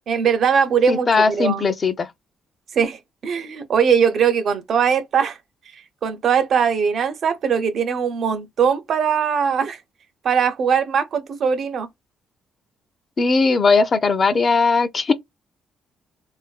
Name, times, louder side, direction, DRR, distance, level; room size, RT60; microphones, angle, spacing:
voice 1, 0.1-1.6 2.8-5.4 6.0-9.8 10.2-11.9, right 7 dB, 60° right, 0.6 m, -20 dB
voice 2, 0.9-2.1 13.2-15.1, left 4 dB, 40° left, 0.5 m, -18 dB
2.6 x 2.5 x 2.2 m
cardioid pair, 90°, 0 cm